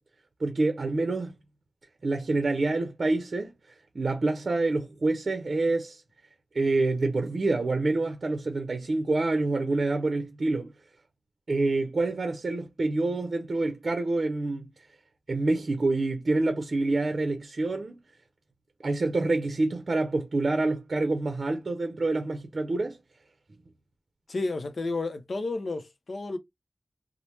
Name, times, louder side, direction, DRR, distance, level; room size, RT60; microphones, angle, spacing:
voice 1, 0.4-1.4 2.0-3.5 3.9-6.0 6.5-10.7 11.5-14.7 15.3-18.0 18.8-23.0, right 2 dB, 65° right, 0.5 m, -27 dB
voice 2, 24.3-26.4, left 3 dB, 70° left, 0.5 m, -31 dB
3.2 x 2.0 x 2.8 m
wide cardioid pair, 75°, 0 cm